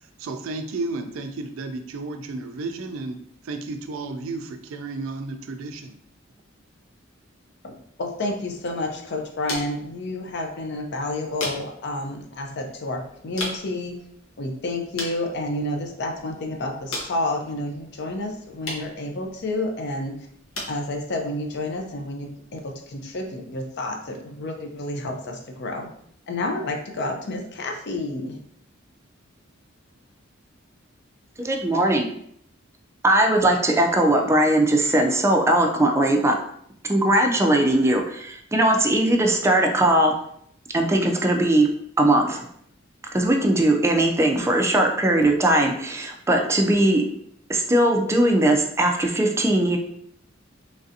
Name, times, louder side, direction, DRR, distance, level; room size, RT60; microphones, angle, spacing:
voice 1, 0.2-5.9, right 3 dB, 90° right, 7 dB, 0.4 m, -33 dB
voice 2, 7.6-13.9 14.4-20.1 20.7-25.9 26.3-28.4, left 2 dB, 60° left, 2 dB, 0.5 m, -30 dB
sound 1, 8.2-23.3, left 2 dB, 85° left, 0.9 m, -40 dB
voice 3, 31.4-32.1 33.0-36.4 36.9-40.1 40.7-41.7 42.0-42.5 43.1-47.0 47.5-49.8, right 1 dB, 15° right, 2 dB, 0.3 m, -19 dB
3.2 x 2.5 x 2.7 m, 0.69 s
head